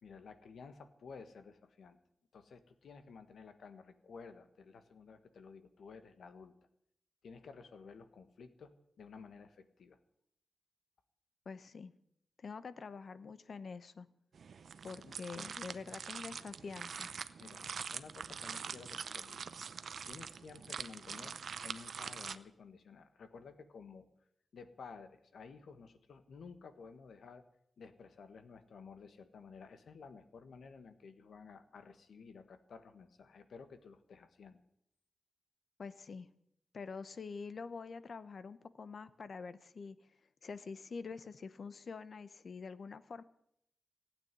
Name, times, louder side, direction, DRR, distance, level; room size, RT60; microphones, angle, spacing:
voice 1, 0.0-2.0 2.3-6.5 7.2-8.7 9.0-10.0 15.0-15.2 17.4-17.6 17.9-19.5 20.1-24.1 24.5-27.4 27.8-34.6, left 5 dB, 90° left, 9 dB, 1.5 m, -53 dB
voice 2, 11.5-11.9 12.4-14.1 14.8-17.1 35.8-36.3 36.7-40.0 40.4-43.2, left 5 dB, 50° left, 14 dB, 0.8 m, -46 dB
sound 1, 14.3-22.4, right 6 dB, 65° right, 0.6 m, -44 dB
16.0 x 9.0 x 9.3 m, 0.73 s
wide cardioid pair, 160°, 0 cm